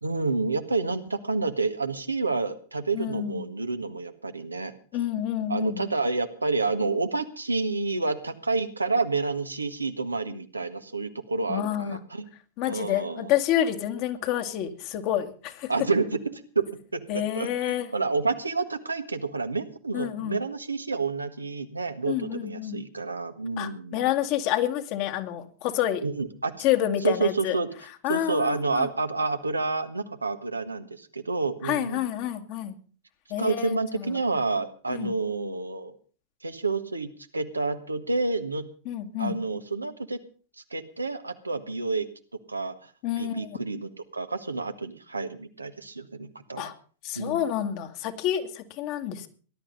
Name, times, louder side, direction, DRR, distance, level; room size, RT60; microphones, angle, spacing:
voice 1, 0.0-4.7 5.5-12.3 12.7-13.3 15.7-24.0 26.0-26.6 27.0-27.7 28.1-32.0 33.4-35.9 36.4-38.7 39.2-40.2 40.7-42.1 42.5-42.9 43.2-46.7 47.1-47.4, right 3 dB, 80° right, 8 dB, 1.4 m, -29 dB
voice 2, 2.9-3.5 4.9-5.9 11.5-12.0 12.6-15.7 17.1-17.9 19.9-20.4 22.1-22.8 23.6-26.1 26.6-27.6 28.0-28.9 31.6-32.8 33.3-34.2 34.9-35.1 38.9-39.4 43.0-43.5 46.6-46.7 47.0-49.3, left 11 dB, 45° left, 7 dB, 2.2 m, -28 dB
19.0 x 12.0 x 5.5 m, 0.41 s
figure-of-eight pair, 90°, 0 cm